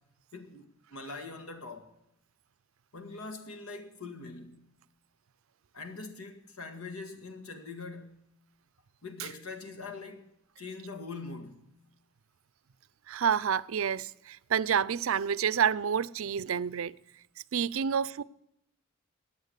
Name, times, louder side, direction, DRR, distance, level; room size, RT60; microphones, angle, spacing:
voice 1, 0.3-1.9 2.9-4.7 5.7-8.3 9.0-11.7, left 3 dB, 90° left, 2.0 m, -43 dB
voice 2, 13.1-17.0 17.5-18.2, right 7 dB, 70° right, 0.4 m, -29 dB
15.0 x 9.4 x 8.1 m
head